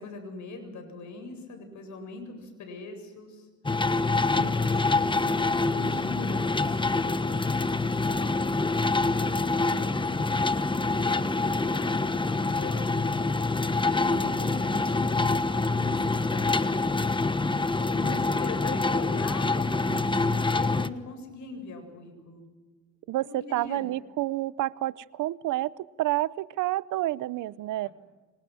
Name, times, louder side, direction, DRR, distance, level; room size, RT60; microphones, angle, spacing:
voice 1, 0.0-3.5 4.2-8.5 9.1-13.0 13.8-17.2 17.9-22.5 23.2-23.9 27.8-27.9, left 3 dB, 70° left, 6 dB, 7.9 m, -42 dB
sound 1, 3.6-20.9, left 3 dB, 15° left, 1.2 m, -26 dB
voice 2, 23.1-27.9, right 16 dB, 85° right, 19 dB, 0.8 m, -29 dB
29.0 x 25.0 x 6.3 m, 1.2 s
cardioid pair, 90°, 30 cm